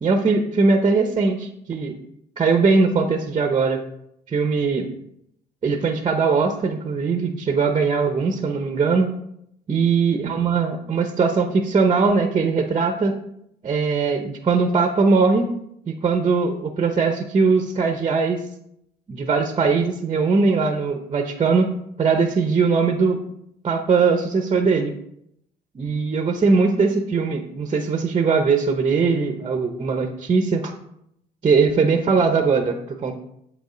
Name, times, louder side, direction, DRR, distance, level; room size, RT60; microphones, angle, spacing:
voice 1, 0.0-1.9 2.4-3.8 4.3-4.9 5.6-9.1 9.7-13.1 13.6-15.5 16.0-18.4 19.1-21.7 22.0-23.2 23.6-24.9 25.7-30.7 31.4-33.1, right 4 dB, 30° right, 5 dB, 0.8 m, -20 dB
7.7 x 5.3 x 3.8 m, 0.75 s
cardioid pair, 110°, 17 cm